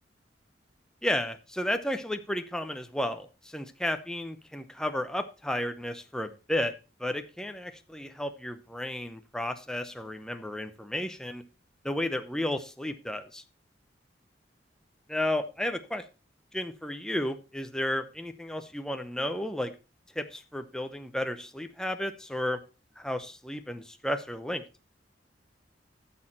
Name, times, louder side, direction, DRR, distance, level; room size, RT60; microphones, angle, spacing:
voice 1, 1.0-6.7 7.0-11.4 11.8-13.4 15.1-16.1 16.5-19.7 20.1-22.6 23.0-24.6, left 1 dB, 5° left, 7 dB, 0.8 m, -33 dB
12.5 x 6.6 x 4.3 m, 0.30 s
head